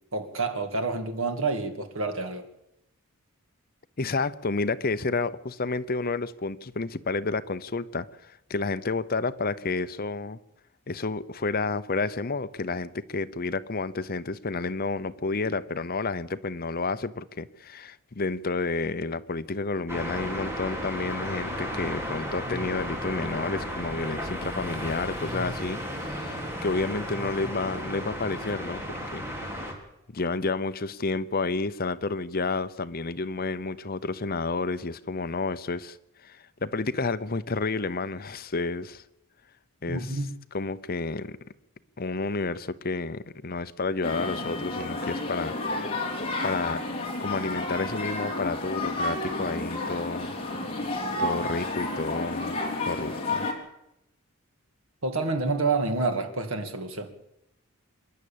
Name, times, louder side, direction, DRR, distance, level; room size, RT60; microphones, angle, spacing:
voice 1, 0.1-2.5 39.9-40.3 55.0-57.1, right 3 dB, 60° right, 2.3 m, -28 dB
voice 2, 4.0-10.4 10.9-29.3 30.1-36.0 36.2-39.0 39.8-40.2 40.5-41.4 42.0-45.9 46.4-46.8 47.2-50.4 51.2-53.5, left 3 dB, 40° left, 0.8 m, -30 dB
sound 1, 19.9-29.7, equal, 10° right, 3.5 m, -34 dB
sound 2, 44.0-53.5, left 2 dB, 25° left, 3.1 m, -31 dB
26.5 x 11.0 x 8.7 m
head